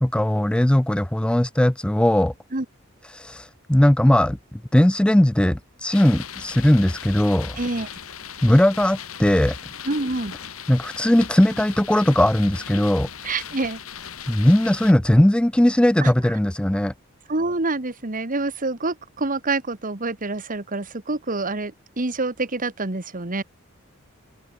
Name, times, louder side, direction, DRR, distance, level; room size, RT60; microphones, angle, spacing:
voice 1, 0.0-2.3 3.1-7.6 8.4-9.6 10.7-13.1 14.3-16.9, left 1 dB, 5° left, 0.3 m, -19 dB
sound 1, 5.9-14.9, left 8 dB, 80° left, 2.5 m, -38 dB
voice 2, 7.6-7.9 9.8-10.3 13.2-13.8 16.0-16.1 17.3-23.4, right 2 dB, 40° right, 1.7 m, -27 dB
head